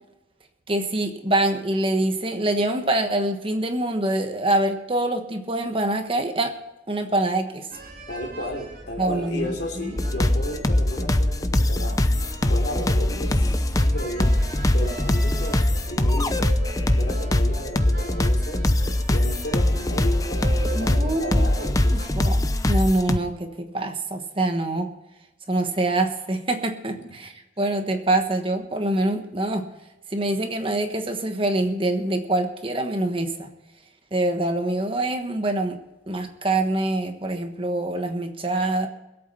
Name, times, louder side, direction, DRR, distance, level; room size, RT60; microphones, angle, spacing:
voice 1, 0.7-6.5 6.9-7.7 9.0-9.5 20.7-21.4 21.9-24.9 25.5-29.7 30.1-33.5 34.1-35.8 36.1-38.9, right 2 dB, 30° right, 6 dB, 1.2 m, -25 dB
sound 1, 7.7-22.1, right 2 dB, 50° right, 3.4 m, -39 dB
voice 2, 8.1-12.0 12.5-14.4 14.7-16.4 16.8-18.7 19.1-22.1 26.9-27.3, left 1 dB, 60° left, 2 dB, 3.4 m, -34 dB
sound 2, 10.0-23.2, left 1 dB, 20° left, 0.7 m, -22 dB
22.0 x 8.5 x 5.5 m, 0.99 s
head